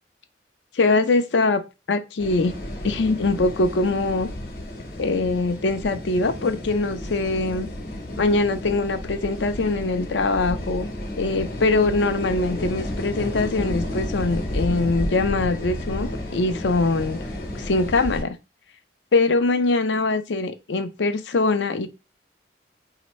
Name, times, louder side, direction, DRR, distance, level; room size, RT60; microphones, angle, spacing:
voice 1, 0.7-1.6 1.9-2.5 2.8-4.3 5.0-7.7 8.2-10.9 11.2-17.2 17.5-18.4 19.1-21.9, left 3 dB, 90° left, 0.6 m, -22 dB
sound 1, 2.2-18.2, left 1 dB, 55° left, 1.0 m, -32 dB
4.2 x 2.8 x 3.0 m
head